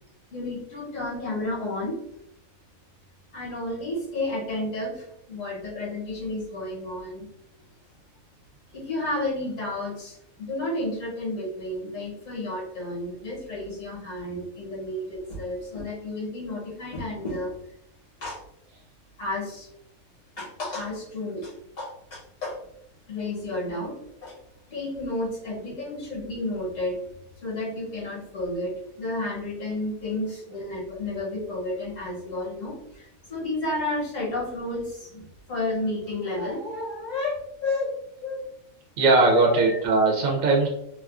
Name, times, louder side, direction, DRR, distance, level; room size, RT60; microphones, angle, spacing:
voice 1, 0.3-2.0 3.3-7.2 8.7-17.5 18.2-18.4 19.2-19.7 20.4-22.6 23.1-24.4 24.7-27.0 27.4-37.9 38.2-38.4 39.3-39.8, left 2 dB, 65° left, -5 dB, 1.5 m, -31 dB
voice 2, 39.0-40.7, right 3 dB, 75° right, -2 dB, 1.0 m, -19 dB
3.0 x 2.4 x 2.3 m, 0.77 s
omnidirectional pair, 1.4 m